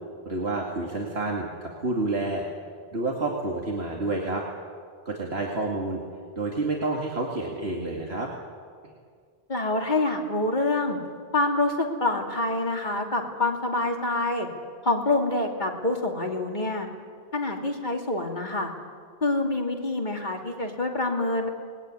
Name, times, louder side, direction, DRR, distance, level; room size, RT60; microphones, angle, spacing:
voice 1, 0.3-2.4 2.9-4.4 5.1-6.0 6.4-8.3, right 2 dB, 80° right, -1 dB, 2.7 m, -29 dB
voice 2, 9.5-11.0 11.3-14.5 14.8-16.9 17.3-18.7 19.2-21.5, left 2 dB, 45° left, 1 dB, 3.0 m, -26 dB
25.0 x 20.5 x 9.8 m, 2.1 s
omnidirectional pair, 1.1 m